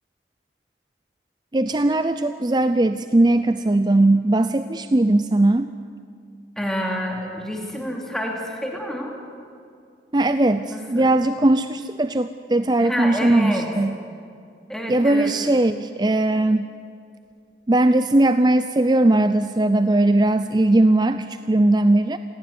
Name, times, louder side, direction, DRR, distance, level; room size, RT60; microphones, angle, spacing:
voice 1, 1.5-5.7 10.1-13.9 14.9-16.7 17.7-22.2, right 2 dB, 25° right, 11 dB, 0.5 m, -19 dB
voice 2, 6.6-9.2 10.7-11.1 12.8-13.7 14.7-15.3, equal, 5° left, 0 dB, 2.8 m, -28 dB
26.5 x 17.0 x 9.6 m, 2.4 s
head